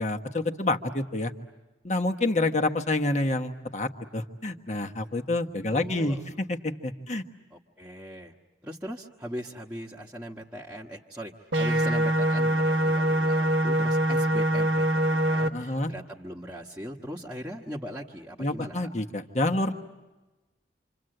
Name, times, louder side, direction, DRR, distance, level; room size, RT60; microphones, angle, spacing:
voice 1, 0.0-1.3 1.8-6.2 6.5-7.2 15.5-15.9 18.4-19.7, left 2 dB, 40° left, 4 dB, 1.4 m, -28 dB
voice 2, 5.7-6.2 7.5-8.3 8.6-18.9, equal, 10° right, -4 dB, 1.3 m, -40 dB
sound 1, 11.5-15.5, right 1 dB, 90° right, 1.5 m, -24 dB
28.0 x 27.0 x 7.8 m, 1.1 s
head